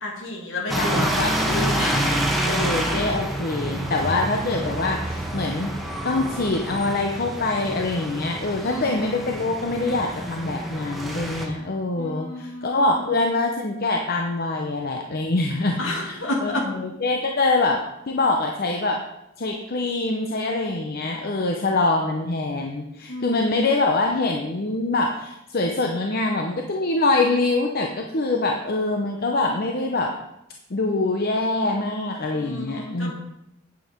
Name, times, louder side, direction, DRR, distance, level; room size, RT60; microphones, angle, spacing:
voice 1, 0.0-1.1 1.8-2.0 8.6-8.9 12.0-13.1 15.8-16.7 23.1-23.7 32.3-33.1, left 1 dB, 70° left, -1 dB, 2.6 m, -30 dB
voice 2, 0.7-5.7 6.0-19.0 19.4-30.1 30.7-33.1, left 2 dB, 50° left, 2 dB, 0.8 m, -24 dB
sound 1, 0.7-11.5, right 1 dB, ahead, 1.3 m, -27 dB
8.8 x 8.4 x 4.5 m, 0.86 s
head